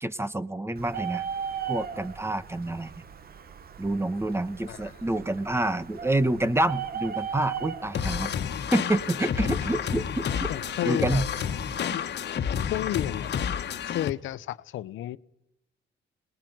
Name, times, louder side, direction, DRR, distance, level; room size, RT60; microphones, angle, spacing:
voice 1, 0.0-1.2 1.7-2.9 3.8-8.3 8.7-10.5 10.8-11.3, right 1 dB, 10° right, 1.3 m, -28 dB
Bird, 0.8-11.9, right 8 dB, 50° right, 1.4 m, -39 dB
sound 1, 7.9-14.1, left 8 dB, 60° left, 1.5 m, -30 dB
voice 2, 10.5-11.2 11.9-12.0 12.6-13.3 13.8-15.2, left 13 dB, 80° left, 0.9 m, -32 dB
27.0 x 20.5 x 9.4 m
cardioid pair, 90°, 20 cm